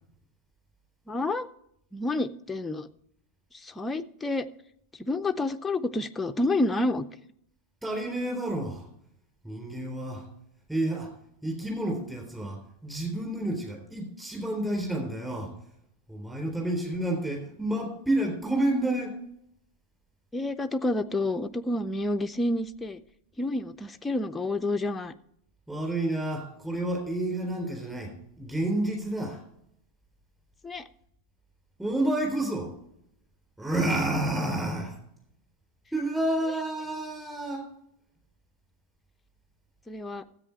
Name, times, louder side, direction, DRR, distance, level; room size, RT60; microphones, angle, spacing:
voice 1, 1.1-1.5 1.9-2.9 3.6-4.5 5.0-7.0 20.3-23.0 23.4-25.1 30.6-30.8 39.9-40.2, left 2 dB, 10° left, 8 dB, 0.5 m, -29 dB
voice 2, 7.8-8.9 9.4-10.3 10.7-11.1 11.4-15.5 16.1-19.2 25.7-29.4 31.8-32.8 33.6-35.0 35.9-37.7, right 1 dB, 5° right, 1 dB, 3.6 m, -30 dB
13.5 x 8.1 x 4.5 m, 0.73 s
figure-of-eight pair, 90°, 0 cm